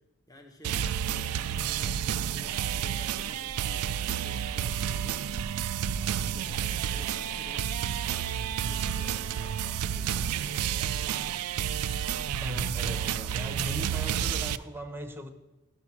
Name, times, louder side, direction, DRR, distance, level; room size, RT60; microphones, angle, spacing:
voice 1, 0.3-5.3 6.0-7.9 8.2-11.7, left 1 dB, 15° left, 1.0 m, -52 dB
sound 1, 0.6-14.6, right 9 dB, 85° right, 0.4 m, -30 dB
sound 2, 0.7-14.5, equal, 50° left, 1.0 m, -46 dB
voice 2, 12.4-15.3, equal, 10° right, 0.8 m, -37 dB
12.0 x 6.3 x 5.9 m
head